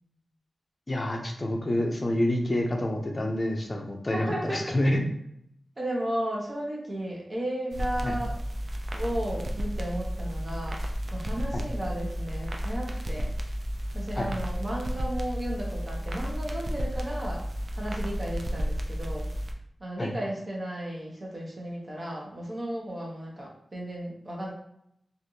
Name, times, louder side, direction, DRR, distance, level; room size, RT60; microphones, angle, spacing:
voice 1, 0.9-5.0 8.0-8.1 11.5-11.6 14.2-14.3 20.0-20.1, left 1 dB, 35° left, 1 dB, 0.6 m, -28 dB
voice 2, 4.1-4.7 5.8-8.3 8.9-10.8 11.1-13.3 13.9-17.4 17.7-19.3 19.8-24.5, right 1 dB, 30° right, -3 dB, 1.0 m, -34 dB
sound 1, 7.7-19.5, equal, 50° right, 0.4 m, -32 dB
3.2 x 2.5 x 2.7 m, 0.73 s
wide cardioid pair, 100°, 0 cm